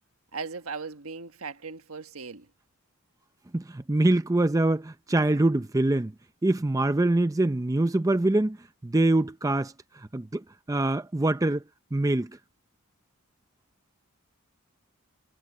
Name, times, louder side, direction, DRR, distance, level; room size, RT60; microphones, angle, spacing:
voice 1, 0.3-2.5, right 4 dB, 75° right, 1.5 m, -38 dB
voice 2, 3.5-6.1 6.4-8.6 8.8-11.6 11.9-12.3, right 2 dB, 15° right, 0.5 m, -24 dB
head